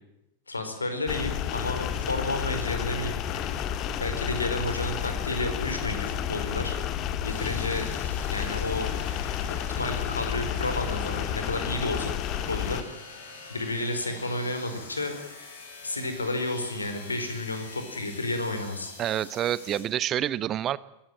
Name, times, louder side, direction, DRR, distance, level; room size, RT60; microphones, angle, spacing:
voice 1, 0.5-3.7 4.0-6.8 7.2-7.9 8.3-8.9 9.5-12.1 12.5-12.8 13.1-13.2 13.5-15.5 15.8-19.0, left 2 dB, 80° left, 7 dB, 4.6 m, -31 dB
sound 1, 1.1-12.8, left 9 dB, 35° left, 1.8 m, -31 dB
sound 2, 7.3-19.8, left 4 dB, 60° left, 7.1 m, -45 dB
voice 2, 19.0-20.8, right 11 dB, 30° right, 18 dB, 1.0 m, -27 dB
23.0 x 16.0 x 9.2 m, 0.86 s
figure-of-eight pair, 90°, 0 cm